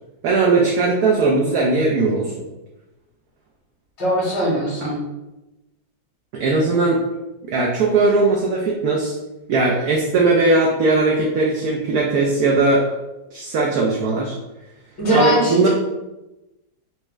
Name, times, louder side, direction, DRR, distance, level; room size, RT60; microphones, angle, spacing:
voice 1, 0.2-2.4 6.3-7.0 7.5-9.1 9.5-12.8 13.3-14.3 15.1-15.7, right 3 dB, 70° right, -2 dB, 0.9 m, -18 dB
voice 2, 4.0-5.0 15.0-15.7, equal, 75° left, -5 dB, 2.1 m, -20 dB
4.3 x 2.3 x 3.1 m, 0.99 s
omnidirectional pair, 2.0 m